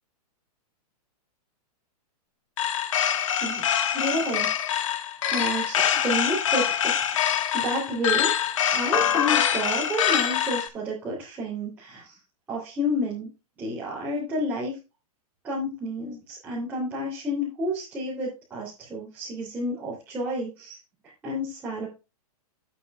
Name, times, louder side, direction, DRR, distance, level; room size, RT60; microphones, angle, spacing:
sound 1, 2.6-10.7, left 9 dB, 55° left, 1.7 m, -24 dB
voice 1, 3.4-4.5 5.3-12.2 12.5-13.3 13.6-14.8 15.4-20.8 21.2-21.9, equal, 10° right, -7 dB, 3.3 m, -30 dB
12.5 x 8.4 x 2.4 m, 0.27 s
hypercardioid pair, 175°, 20 cm